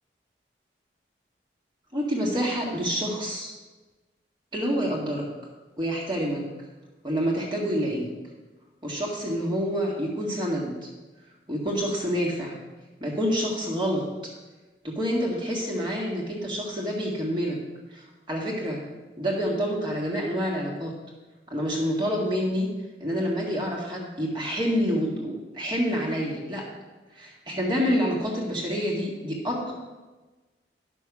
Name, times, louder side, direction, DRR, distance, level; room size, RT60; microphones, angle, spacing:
voice 1, 1.9-3.5 4.5-5.3 5.8-6.5 7.0-8.1 8.8-10.9 11.5-12.6 13.0-14.3 15.0-17.6 17.9-18.8 19.2-20.9 21.5-22.7 23.0-26.7 27.1-29.7, equal, 25° right, -3 dB, 1.8 m, -27 dB
11.0 x 6.2 x 6.1 m, 1.2 s
head